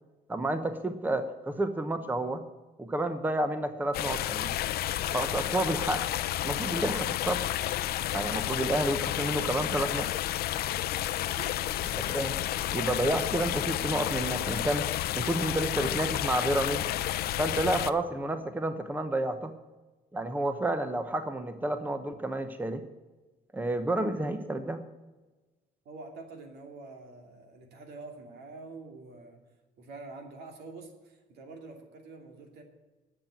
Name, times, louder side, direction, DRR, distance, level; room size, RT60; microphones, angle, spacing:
voice 1, 0.3-2.4 2.8-4.6 5.1-6.0 6.4-7.4 8.1-10.1 12.1-12.4 12.7-14.9 15.1-16.9 17.4-19.5 20.1-22.8 23.5-24.8, right 1 dB, 10° right, 9 dB, 0.9 m, -30 dB
sound 1, 3.9-17.9, left 13 dB, 65° left, 0.6 m, -31 dB
voice 2, 11.2-11.8 25.8-29.4 29.8-32.6, right 3 dB, 75° right, 4 dB, 2.6 m, -46 dB
10.5 x 7.5 x 9.0 m, 1.2 s
cardioid pair, 110°, 17 cm